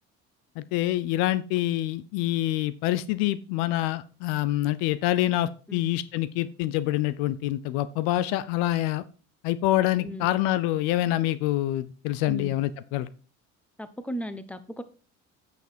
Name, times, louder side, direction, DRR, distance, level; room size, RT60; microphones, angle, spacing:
voice 1, 0.6-9.0 9.4-13.1, left 14 dB, 70° left, 17 dB, 0.7 m, -26 dB
voice 2, 10.0-10.3 12.3-12.5 13.8-14.8, equal, 5° left, 12 dB, 1.0 m, -36 dB
9.0 x 5.9 x 4.4 m, 0.37 s
hypercardioid pair, 65°, 40 cm